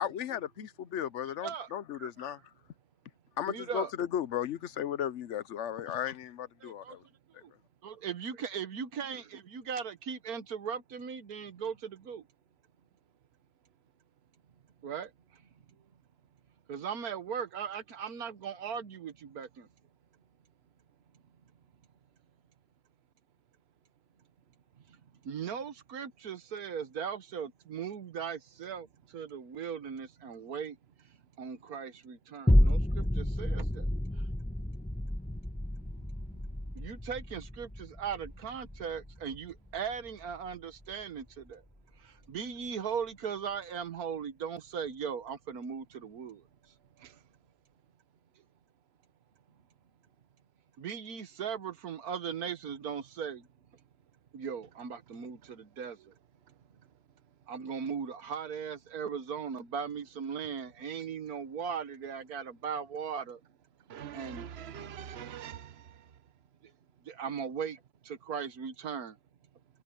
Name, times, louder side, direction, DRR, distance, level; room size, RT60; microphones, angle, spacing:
voice 1, 0.0-2.4 3.4-7.0 7.3-7.4, left 10 dB, 60° left, 0.8 m, -35 dB
voice 2, 1.4-1.7 1.9-2.3 3.4-3.9 6.6-7.0 7.4-7.5 7.8-12.2 14.8-15.1 16.7-19.7 25.2-30.8 31.4-33.9 34.2-34.3 36.7-41.6 42.0-46.4 50.8-53.5 54.3-56.1 57.5-63.4 64.1-64.4 65.3-65.4 66.6-66.7 67.0-69.2, right 7 dB, 65° right, 1.6 m, -38 dB
sound 1, 32.5-41.0 41.5-41.6, left 1 dB, 5° left, 1.0 m, -31 dB
voice 3, 63.9-66.1, right 8 dB, 45° right, 1.1 m, -44 dB
omnidirectional pair, 1.7 m